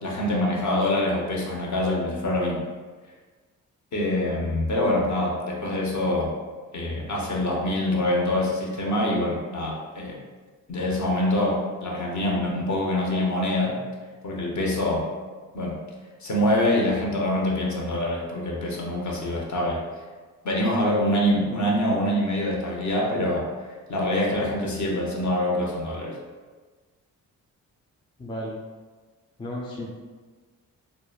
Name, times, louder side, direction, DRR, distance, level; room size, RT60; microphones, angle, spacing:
voice 1, 0.0-2.6 3.9-6.3 6.7-10.2 10.7-13.8 14.2-15.1 15.5-15.8 16.2-19.8 20.4-23.5 23.9-26.2, left 1 dB, 50° left, -2 dB, 0.8 m, -25 dB
voice 2, 28.2-28.6 29.4-29.9, left 1 dB, 15° left, -2 dB, 0.4 m, -33 dB
3.0 x 2.1 x 2.3 m, 1.4 s
supercardioid pair, 55°, 38 cm